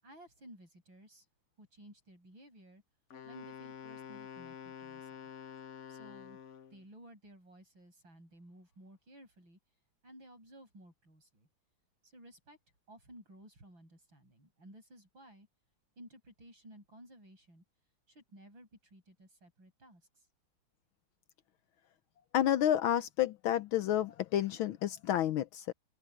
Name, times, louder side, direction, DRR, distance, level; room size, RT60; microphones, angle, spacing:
voice 1, 0.0-1.3 1.6-2.8 3.2-5.3 5.9-6.4 6.7-9.6 10.0-11.5 12.0-12.6 12.9-15.5 16.0-17.6 18.1-20.3, right 1 dB, 65° right, 8.7 m, -56 dB
Wind instrument woodwind instrument, 3.1-6.8, left 8 dB, 60° left, 0.7 m, -48 dB
voice 2, 22.3-25.7, left 11 dB, 75° left, 1.5 m, -30 dB
open air
omnidirectional pair, 2.3 m